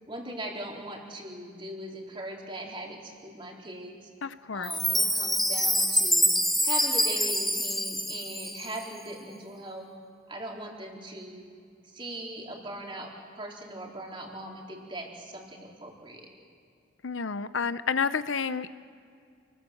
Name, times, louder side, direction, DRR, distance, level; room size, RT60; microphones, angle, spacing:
voice 1, 0.1-4.1 4.5-9.9 10.3-11.5 11.8-16.3, right 1 dB, 25° right, -1 dB, 4.0 m, -40 dB
voice 2, 4.2-4.7 17.0-18.8, left 5 dB, 70° left, 13 dB, 0.7 m, -30 dB
Chime, 4.6-8.9, equal, ahead, 1.2 m, -26 dB
29.0 x 20.5 x 7.8 m, 2.3 s
head